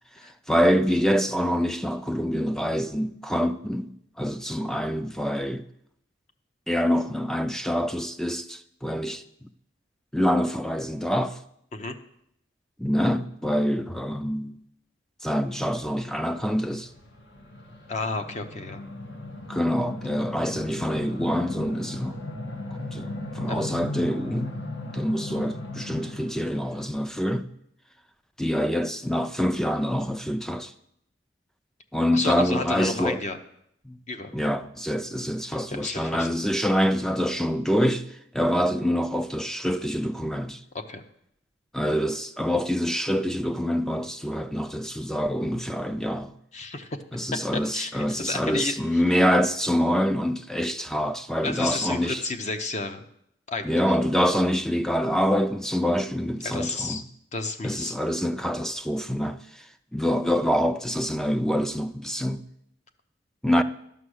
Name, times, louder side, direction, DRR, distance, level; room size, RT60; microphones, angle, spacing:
voice 1, 0.5-5.7 6.7-9.2 10.1-11.4 12.8-14.6 15.2-16.9 19.5-22.2 22.7-24.5 24.9-27.5 28.4-30.7 31.9-33.2 33.9-34.0 34.3-38.1 38.3-40.6 41.7-46.3 47.1-52.2 53.6-57.0 57.6-59.6 59.9-62.4 63.4-63.6, equal, 5° left, 0.3 m, -26 dB
sound 1, 16.1-26.5, left 2 dB, 70° left, 1.6 m, -37 dB
voice 2, 17.9-18.8 23.5-23.6 32.1-33.4 34.1-34.3 35.7-36.3 40.7-41.0 46.5-46.9 47.3-49.0 51.4-53.0 53.5-54.0 56.4-57.0 57.3-57.9, left 3 dB, 35° left, 0.7 m, -31 dB
11.0 x 6.1 x 6.4 m
head